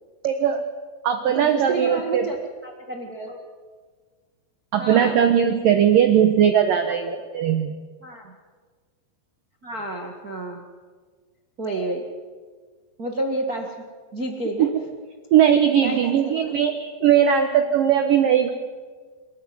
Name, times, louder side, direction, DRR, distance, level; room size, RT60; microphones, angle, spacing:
voice 1, 0.2-0.6 1.0-2.3 4.7-7.7 14.6-14.7 15.3-18.5, right 9 dB, 75° right, 7 dB, 2.1 m, -19 dB
voice 2, 1.2-2.3 2.6-3.4 4.8-5.2 6.8-7.1 8.0-8.3 9.6-10.6 11.6-12.0 13.0-13.7 14.1-14.7 15.8-16.5, right 1 dB, 90° right, 1 dB, 0.8 m, -30 dB
28.5 x 14.0 x 9.6 m, 1.5 s
omnidirectional pair, 5.4 m